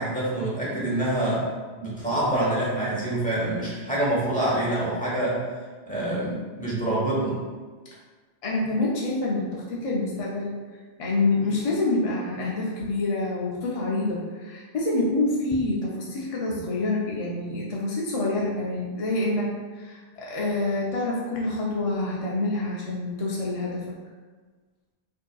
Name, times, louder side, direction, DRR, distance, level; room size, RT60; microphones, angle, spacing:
voice 1, 0.0-1.5 1.8-5.4 5.9-7.4, right 1 dB, 10° left, -8 dB, 1.0 m, -26 dB
voice 2, 8.4-10.6 11.0-23.8, left 2 dB, 50° left, -4 dB, 0.5 m, -27 dB
4.9 x 2.8 x 2.3 m, 1.4 s
omnidirectional pair, 1.1 m